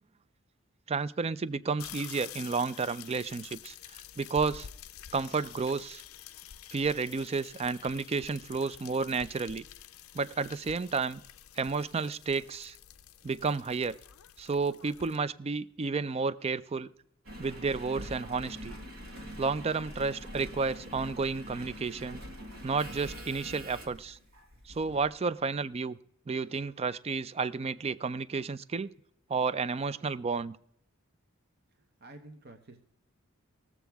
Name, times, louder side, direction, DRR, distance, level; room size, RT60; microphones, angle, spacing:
voice 1, 0.9-3.7 4.2-4.7 5.1-6.0 6.7-9.6 10.1-11.2 11.6-12.8 13.2-14.0 14.4-16.9 17.4-18.8 19.4-22.2 22.6-24.2 24.7-26.0 26.3-28.9 29.3-30.6, right 4 dB, 30° right, 17 dB, 0.4 m, -31 dB
sound 1, 1.8-15.2, left 10 dB, 85° left, 0.5 m, -49 dB
Engine, 17.2-25.1 25.7-25.8, equal, 75° right, 1.8 m, -44 dB
voice 2, 31.7-32.8, right 2 dB, 50° right, 4 dB, 0.9 m, -51 dB
20.0 x 7.2 x 3.5 m, 0.69 s
head